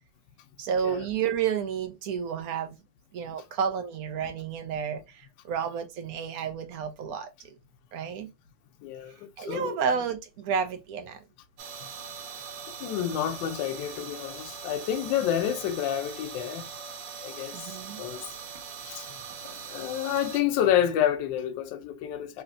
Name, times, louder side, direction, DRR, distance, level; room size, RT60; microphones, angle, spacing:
voice 1, 0.6-2.8 3.1-7.3 7.9-8.3 9.4-11.2 17.1-17.3 17.5-18.0, right 7 dB, 70° right, 0.9 m, -31 dB
voice 2, 8.8-9.8 11.8-11.9 12.8-16.7 17.2-17.6 18.0-18.2 18.8-19.1 19.4-22.4, left 10 dB, 85° left, 1.3 m, -29 dB
sound 1, 11.6-20.4, right 6 dB, 85° right, 1.4 m, -41 dB
3.3 x 2.9 x 2.4 m
omnidirectional pair, 2.0 m